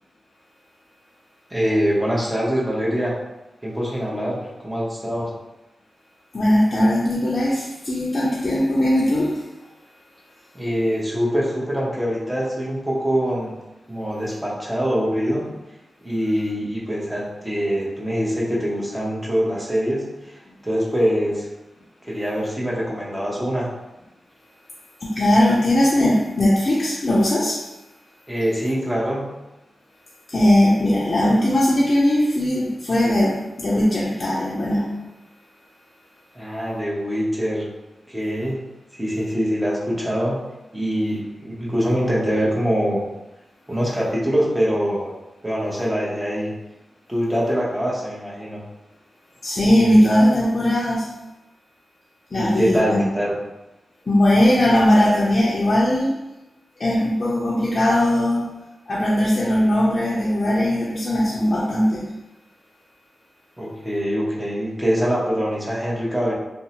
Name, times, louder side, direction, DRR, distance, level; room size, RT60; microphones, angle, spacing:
voice 1, 1.5-3.1 3.6-5.3 10.5-13.6 13.9-15.5 16.0-20.1 20.6-21.5 22.1-23.7 28.3-29.2 36.3-37.7 38.1-38.6 39.0-40.4 40.7-43.0 43.7-45.1 45.4-46.5 47.1-48.6 52.3-53.3 63.6-66.3, equal, 10° right, -6 dB, 0.9 m, -23 dB
voice 2, 6.3-9.4 25.0-27.6 30.3-34.9 49.4-51.1 52.3-53.0 54.1-56.1 56.8-58.5 58.9-62.1, left 1 dB, 45° left, -7 dB, 0.5 m, -19 dB
2.6 x 2.1 x 2.9 m, 0.99 s
cardioid pair, 55°, 0 cm